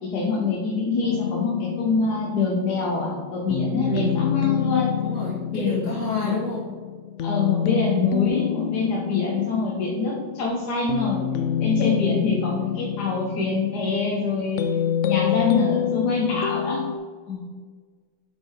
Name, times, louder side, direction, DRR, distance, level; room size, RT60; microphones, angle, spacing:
voice 1, 0.0-4.9 5.5-5.8 6.2-6.3 7.2-11.2 11.6-14.6 15.1-16.8 17.3-17.5, left 4 dB, 70° left, -3 dB, 1.7 m, -25 dB
sound 1, 1.0-17.0, left 10 dB, 90° left, 0.6 m, -27 dB
voice 2, 3.8-4.1 5.0-6.7, left 1 dB, 50° left, -6 dB, 1.9 m, -28 dB
8.0 x 5.2 x 4.7 m, 1.5 s
omnidirectional pair, 1.8 m